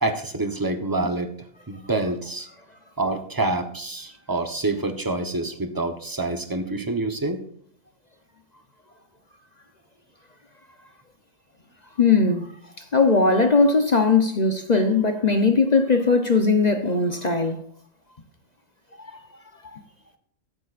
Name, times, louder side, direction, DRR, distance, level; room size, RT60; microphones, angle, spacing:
voice 1, 0.0-1.3 1.7-2.5 3.0-7.4, right 2 dB, 15° right, 0.9 m, -27 dB
voice 2, 12.0-12.5 12.9-17.6 19.0-19.1 19.7-19.8, left 4 dB, 40° left, 0.7 m, -19 dB
15.0 x 11.5 x 2.5 m
omnidirectional pair, 1.6 m